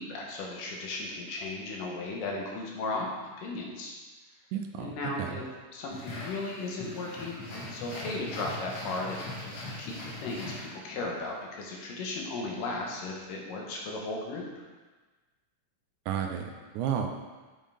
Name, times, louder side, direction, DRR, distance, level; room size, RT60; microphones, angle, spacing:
voice 1, 0.0-3.1 3.4-3.9 4.8-5.4 5.7-9.5 9.8-14.6, left 2 dB, 90° left, -1 dB, 2.8 m, -36 dB
voice 2, 4.5-5.4 16.1-17.1, right 8 dB, 80° right, 4 dB, 1.9 m, -32 dB
sound 1, 5.9-11.1, left 2 dB, 60° left, 2.3 m, -40 dB
7.3 x 5.5 x 3.4 m, 1.3 s
omnidirectional pair, 3.7 m